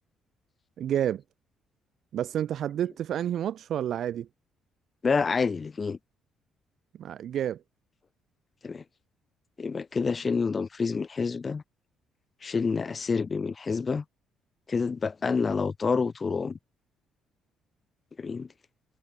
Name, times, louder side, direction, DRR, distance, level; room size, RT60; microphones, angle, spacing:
voice 1, 0.8-1.2 2.1-4.3 7.0-7.6, right 10 dB, 50° right, 1.7 m, -29 dB
voice 2, 5.0-6.0 8.6-8.8 9.6-11.6 12.4-14.0 14.7-16.6 18.2-18.5, left 5 dB, 25° left, 1.7 m, -28 dB
cardioid pair, 165°, 0 cm